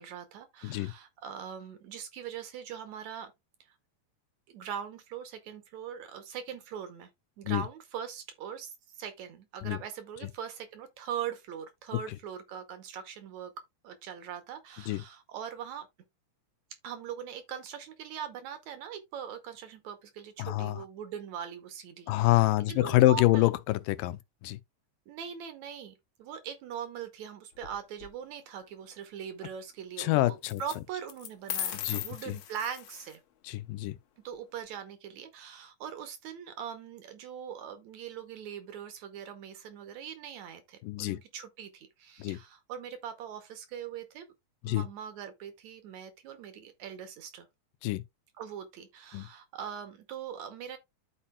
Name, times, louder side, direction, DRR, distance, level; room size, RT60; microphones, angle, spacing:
voice 1, 0.0-3.3 4.5-7.1 7.4-13.5 13.8-15.9 16.8-23.5 25.1-33.2 34.2-44.3 44.6-47.5 48.4-50.8, right 8 dB, 70° right, 1.9 m, -41 dB
voice 2, 20.4-20.8 22.1-24.6 30.0-30.6 31.8-32.4 33.5-34.0 40.8-41.2 42.2-42.4 44.6-44.9 47.8-48.0 49.1-49.3, left 17 dB, 90° left, 2.2 m, -26 dB
sound 1, 27.6-28.1 30.4-30.8 31.1-33.1, left 11 dB, 70° left, 1.7 m, -37 dB
12.0 x 4.3 x 2.3 m
omnidirectional pair, 3.7 m